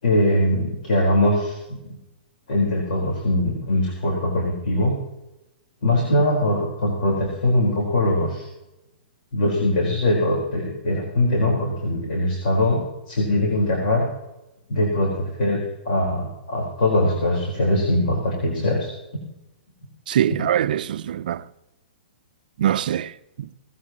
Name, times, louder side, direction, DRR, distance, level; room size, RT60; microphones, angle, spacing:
voice 1, 0.0-2.0 2.5-5.0 5.8-8.4 9.3-14.0 14.7-18.9, left 1 dB, 50° left, 4.6 m, -22 dB
voice 2, 20.1-21.4 22.6-23.5, right 10 dB, 55° right, 0.6 m, -23 dB
18.5 x 16.0 x 3.1 m
hypercardioid pair, 170°, 6 cm